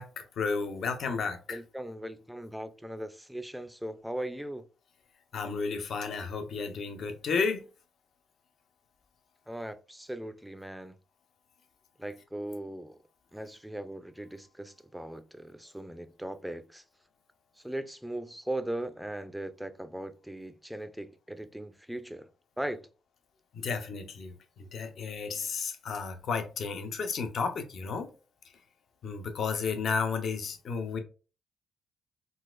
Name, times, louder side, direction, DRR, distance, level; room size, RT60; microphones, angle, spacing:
voice 1, 0.0-1.6 5.3-7.6 23.5-28.1 29.0-31.0, left 5 dB, 60° left, 0.6 m, -32 dB
voice 2, 1.5-4.7 9.5-11.0 12.0-13.0 13.3-16.8 17.6-22.3 22.6-22.9, right 1 dB, 5° right, 0.4 m, -39 dB
3.9 x 2.4 x 2.4 m
cardioid pair, 90°, 0 cm